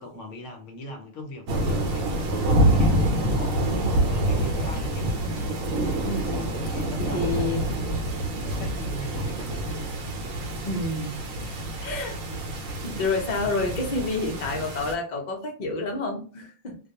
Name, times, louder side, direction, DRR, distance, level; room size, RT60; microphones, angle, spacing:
voice 1, 0.0-5.1 6.7-7.4 8.4-9.7, left 1 dB, 65° left, 0.9 m, -39 dB
sound 1, 1.5-14.9, right 1 dB, 70° right, 0.9 m, -26 dB
voice 2, 6.0-7.7 10.7-12.2 12.8-16.8, left 3 dB, 50° left, 0.5 m, -30 dB
2.3 x 2.2 x 2.7 m
omnidirectional pair, 1.4 m